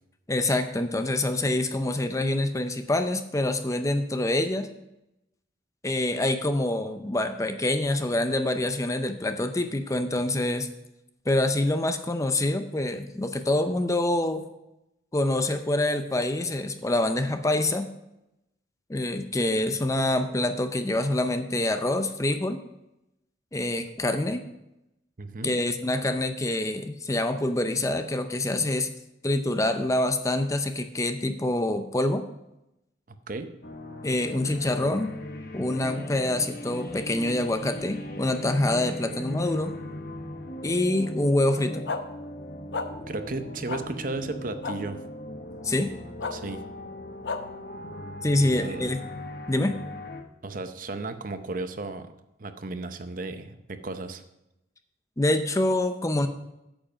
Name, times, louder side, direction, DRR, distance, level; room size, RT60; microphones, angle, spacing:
voice 1, 0.3-4.7 5.8-10.7 11.3-14.5 15.1-17.9 18.9-22.6 23.5-24.4 25.4-28.9 29.2-32.2 34.0-35.1 35.5-39.7 40.6-41.9 45.6-45.9 48.2-49.0 49.5-49.8 55.2-56.3, left 1 dB, 20° left, 8 dB, 0.6 m, -26 dB
voice 2, 25.2-25.5 33.1-33.5 43.1-45.0 46.3-46.6 48.4-48.9 50.4-52.1 52.4-54.2, right 3 dB, 50° right, 9 dB, 0.7 m, -34 dB
sound 1, 33.6-50.2, left 1 dB, 55° left, 1.1 m, -38 dB
sound 2, 41.9-42.0 42.7-42.9 43.7-43.8 44.6-44.8 46.2-46.3 47.2-47.4, left 4 dB, 75° left, 0.8 m, -30 dB
8.9 x 7.6 x 5.1 m, 0.87 s
head